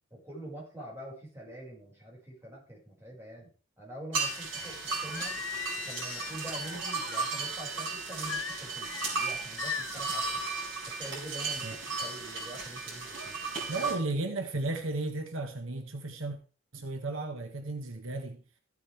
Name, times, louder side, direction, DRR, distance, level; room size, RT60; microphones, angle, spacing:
voice 1, 0.1-3.5 3.8-5.4 5.8-10.4 11.0-13.4 13.7-13.9 14.2-14.4, right 1 dB, 15° right, 5.6 m, -45 dB
sound 1, 4.1-14.0, right 4 dB, 65° right, 5.2 m, -35 dB
Singing, 5.1-7.3 8.3-9.1 9.6-10.1, left 9 dB, 70° left, 0.6 m, -39 dB
voice 2, 13.7-16.4 16.7-18.4, right 2 dB, 85° right, 1.5 m, -34 dB
15.0 x 8.4 x 3.5 m
head